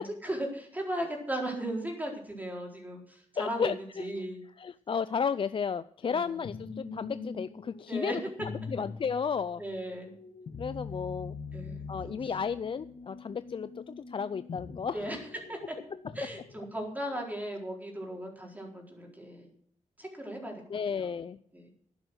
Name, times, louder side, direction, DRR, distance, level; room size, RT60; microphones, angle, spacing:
voice 1, 0.0-3.7 4.0-4.4 6.0-6.4 7.9-8.2 9.6-10.1 11.5-12.3 14.9-15.2 15.5-15.8 16.1-19.5 20.0-20.5 20.9-21.2 21.5-21.7, right 1 dB, 15° right, 0 dB, 4.1 m, -37 dB
voice 2, 3.4-4.1 4.6-8.2 8.7-9.6 10.6-11.4 11.9-15.0 20.7-21.4, left 6 dB, 45° left, 14 dB, 0.4 m, -33 dB
sound 1, 6.4-17.2, left 4 dB, 80° left, 1.7 m, -44 dB
11.0 x 10.5 x 6.3 m, 0.62 s
wide cardioid pair, 120°, 13 cm